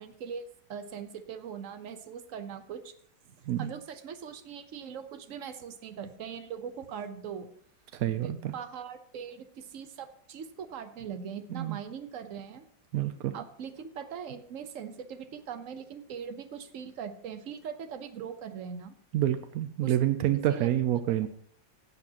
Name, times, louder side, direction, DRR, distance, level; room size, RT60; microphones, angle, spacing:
voice 1, 0.0-2.9 3.2-7.5 8.2-12.6 13.3-18.9 19.8-20.0 20.5-20.7, right 7 dB, 55° right, 9 dB, 1.0 m, -41 dB
voice 2, 7.9-8.5 11.5-11.8 12.9-13.3 19.1-21.3, right 12 dB, 75° right, 10 dB, 0.8 m, -28 dB
16.0 x 8.2 x 2.9 m, 0.64 s
omnidirectional pair, 2.0 m